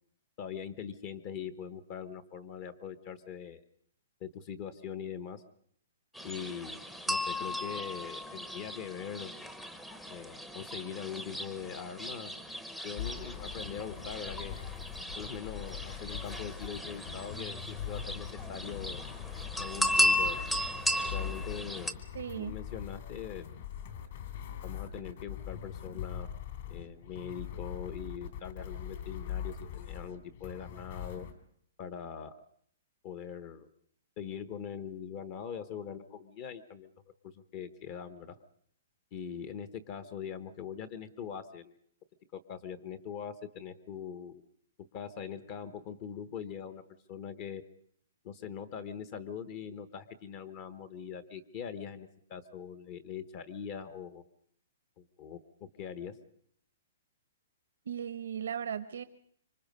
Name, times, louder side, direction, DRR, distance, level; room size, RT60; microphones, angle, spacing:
voice 1, 0.4-3.6 4.2-5.4 6.2-9.4 10.1-12.4 12.8-14.5 15.2-19.0 19.6-20.4 21.1-21.9 22.3-23.5 24.6-26.3 26.7-31.3 31.8-32.4 33.0-33.7 34.2-36.9 37.2-38.4 39.1-41.8 42.5-44.4 44.9-46.8 47.1-47.6 48.2-54.2 55.0-56.2, left 7 dB, 30° left, 12 dB, 1.0 m, -42 dB
sound 1, 6.1-21.9, left 1 dB, 5° left, 0.8 m, -35 dB
sound 2, 13.0-31.3, left 9 dB, 45° left, 2.7 m, -42 dB
voice 2, 22.1-22.6 57.9-59.0, right 8 dB, 75° right, 11 dB, 0.9 m, -37 dB
26.0 x 24.0 x 5.4 m, 0.65 s
hypercardioid pair, 170°, 0 cm